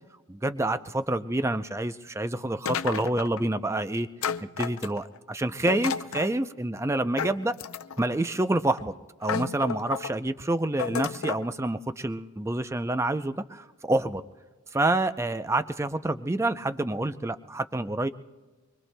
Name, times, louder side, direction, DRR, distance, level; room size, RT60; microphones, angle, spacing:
voice 1, 0.3-4.1 4.4-7.6 8.0-8.9 9.2-14.2 14.7-18.1, right 2 dB, 10° right, 11 dB, 0.4 m, -28 dB
sound 1, 2.7-3.5 4.2-5.2 5.7-6.3 7.2-8.1 8.8-8.9 9.2-10.1 10.8-11.5, left 7 dB, 70° left, 0.5 m, -32 dB
24.5 x 23.5 x 2.2 m, 1.3 s
head